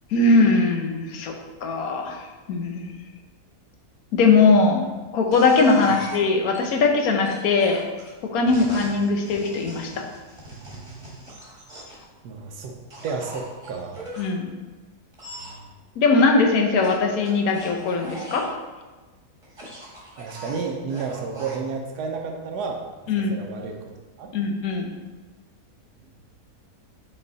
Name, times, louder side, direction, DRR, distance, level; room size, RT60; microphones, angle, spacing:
voice 1, 0.1-1.3 1.6-2.2 2.5-2.8 4.1-4.8 5.1-7.8 8.3-10.0 14.2-14.5 16.0-18.5 23.1-23.3 24.3-24.9, left 3 dB, 70° left, 3 dB, 1.2 m, -20 dB
sound 1, 5.3-6.6 7.2-12.0 12.9-14.3 15.1-15.6 16.8-18.5 19.4-21.6, right 1 dB, 20° right, 1.4 m, -41 dB
voice 2, 12.2-12.8 13.0-14.1 15.4-15.7 20.2-22.8 23.3-23.8 24.2-24.3, right 5 dB, 85° right, 2 dB, 1.2 m, -31 dB
6.0 x 4.1 x 3.9 m, 1.3 s
omnidirectional pair, 1.7 m